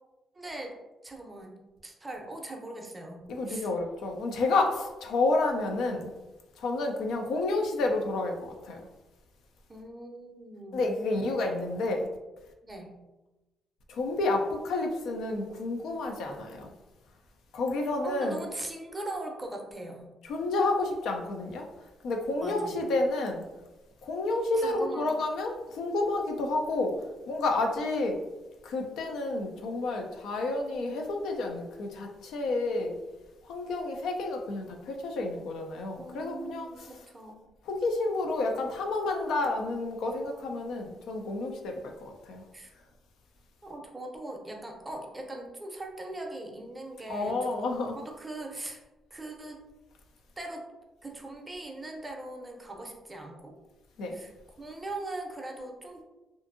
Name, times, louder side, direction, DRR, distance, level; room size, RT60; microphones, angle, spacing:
voice 1, 0.3-0.7 1.0-3.2 3.5-3.7 9.7-10.9 12.6-13.0 18.0-20.1 22.4-22.8 24.5-25.1 36.0-37.4 42.5-42.7 43.6-48.8 49.1-49.6 50.4-50.6 51.0-53.5 54.1-54.3 54.6-56.0, right 2 dB, 20° right, 1 dB, 0.5 m, -40 dB
voice 2, 3.3-6.1 6.6-8.8 10.7-12.1 13.9-16.7 17.5-18.4 20.2-21.6 22.0-23.4 24.0-26.9 27.3-28.2 28.6-33.0 33.4-36.9 37.7-41.7 42.2-42.4 47.1-48.0 54.0-54.2, left 2 dB, 80° left, 3 dB, 0.4 m, -30 dB
2.5 x 2.5 x 2.5 m, 1.1 s
cardioid pair, 90°, 0 cm